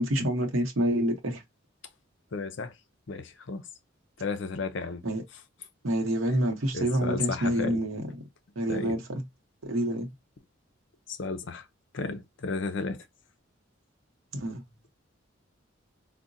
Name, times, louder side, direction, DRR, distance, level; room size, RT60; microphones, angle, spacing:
voice 1, 0.0-1.4 5.0-5.2 5.8-8.0 8.6-9.2 9.6-10.1 14.3-14.6, right 1 dB, 85° right, 0.8 m, -27 dB
voice 2, 2.3-2.7 3.1-3.6 4.2-5.0 6.7-7.8 8.7-9.0 11.1-11.7 11.9-13.0, left 4 dB, 65° left, 0.5 m, -33 dB
3.8 x 2.1 x 2.5 m
head